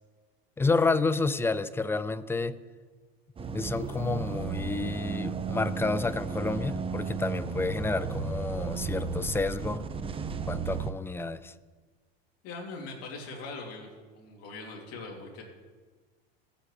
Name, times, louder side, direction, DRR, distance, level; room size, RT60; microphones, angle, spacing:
voice 1, 0.6-2.6 3.5-9.9 10.5-11.5, left 3 dB, 10° left, 0.3 m, -30 dB
sound 1, 3.4-10.9, right 5 dB, 20° right, 0.7 m, -34 dB
voice 2, 12.4-13.9 14.1-15.4, left 3 dB, 50° left, 2.9 m, -41 dB
18.0 x 8.3 x 3.3 m
hypercardioid pair, 105°, 31 cm